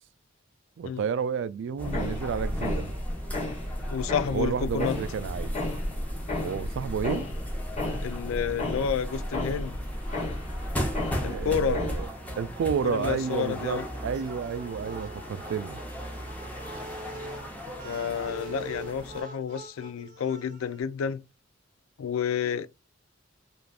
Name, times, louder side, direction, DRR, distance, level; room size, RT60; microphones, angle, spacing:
voice 1, 0.8-2.9 4.3-5.6 6.4-7.3 11.3-12.1 12.4-15.8, right 7 dB, 60° right, 0.3 m, -31 dB
sound 1, 1.8-12.1, left 1 dB, 35° left, 1.0 m, -32 dB
sound 2, 1.8-19.2, equal, 10° left, 0.7 m, -39 dB
voice 2, 3.9-5.0 8.0-9.8 11.2-11.8 12.8-13.8 17.8-21.2 22.0-22.7, left 7 dB, 90° left, 0.4 m, -30 dB
sound 3, 14.1-20.8, right 2 dB, 40° right, 0.8 m, -44 dB
3.3 x 2.5 x 2.4 m
head